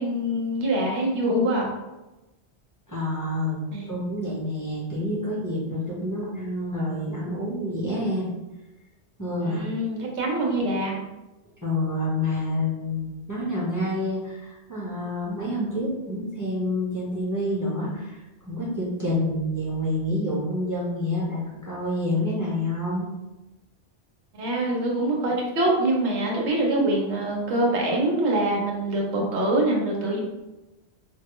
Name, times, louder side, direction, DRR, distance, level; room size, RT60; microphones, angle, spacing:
voice 1, 0.0-1.7 3.7-3.8 9.4-10.9 24.4-30.2, right 1 dB, 80° right, -2 dB, 1.0 m, -24 dB
voice 2, 2.9-3.6 3.9-8.3 9.2-9.6 11.6-23.1, left 1 dB, 20° left, -7 dB, 0.9 m, -28 dB
3.1 x 2.5 x 3.0 m, 1.0 s
omnidirectional pair, 1.1 m